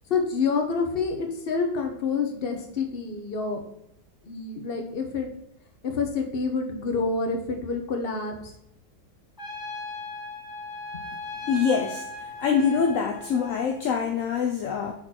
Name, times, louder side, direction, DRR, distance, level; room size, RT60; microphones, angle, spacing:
voice 1, 0.1-3.6 4.2-5.3 5.8-8.3 10.9-11.0, left 4 dB, 40° left, 3 dB, 1.0 m, -28 dB
Trumpet, 9.4-13.7, left 2 dB, 15° left, 0.9 m, -37 dB
voice 2, 11.5-12.1 12.4-14.9, left 6 dB, 65° left, 3 dB, 0.8 m, -24 dB
6.4 x 4.3 x 4.3 m, 0.82 s
omnidirectional pair, 2.0 m